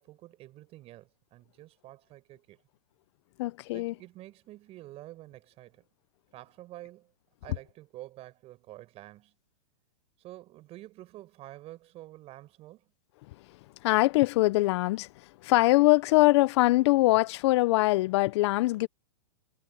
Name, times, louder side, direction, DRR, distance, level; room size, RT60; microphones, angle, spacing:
voice 1, 0.0-2.6 3.7-5.8 6.3-7.1 7.4-9.3 10.2-12.9, right 16 dB, 30° right, 5.4 m, -48 dB
voice 2, 3.4-3.9 13.8-15.1 15.4-18.9, left 20 dB, 45° left, 0.6 m, -23 dB
hypercardioid pair, 140°, 20 cm